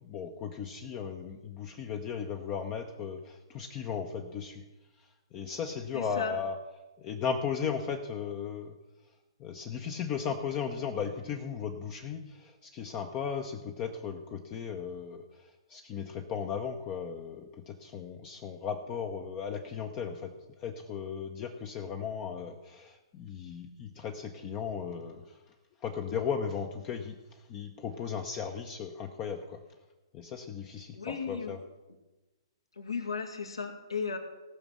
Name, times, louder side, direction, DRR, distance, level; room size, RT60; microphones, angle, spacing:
voice 1, 0.0-4.6 5.0-6.6 7.0-8.7 9.4-20.3 20.6-25.4 25.8-29.6 30.1-31.6, left 7 dB, 25° left, 5 dB, 0.9 m, -36 dB
voice 2, 5.9-6.4 30.9-31.6 32.8-34.2, left 5 dB, 75° left, 2 dB, 2.2 m, -35 dB
18.0 x 6.1 x 6.8 m, 1.1 s
figure-of-eight pair, 120°, 3 cm